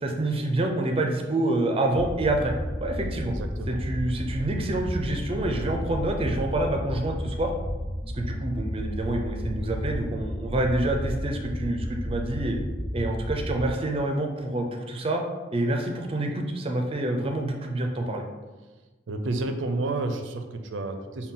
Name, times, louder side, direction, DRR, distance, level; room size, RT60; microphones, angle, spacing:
voice 1, 0.0-2.5 2.8-3.3 3.7-7.5 8.1-12.6 12.9-15.2 15.5-18.2, right 2 dB, 30° right, 3 dB, 0.4 m, -27 dB
sound 1, 1.9-13.7, equal, 60° left, 0.7 m, -32 dB
voice 2, 3.3-4.2 19.1-21.3, right 2 dB, 85° right, 7 dB, 0.5 m, -31 dB
5.6 x 2.2 x 3.7 m, 1.2 s
head